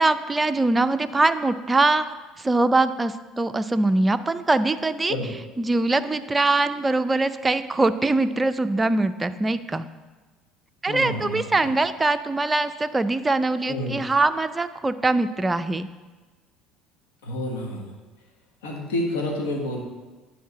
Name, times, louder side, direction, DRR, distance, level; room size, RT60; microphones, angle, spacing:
voice 1, 0.0-2.0 2.4-5.2 5.6-9.9 10.8-15.9, right 2 dB, 20° right, 10 dB, 0.4 m, -22 dB
voice 2, 10.9-11.7 13.7-14.0 17.2-17.9 18.6-19.8, left 1 dB, 80° left, 0 dB, 1.4 m, -29 dB
9.4 x 3.8 x 6.1 m, 1.3 s
hypercardioid pair, 70°, 0 cm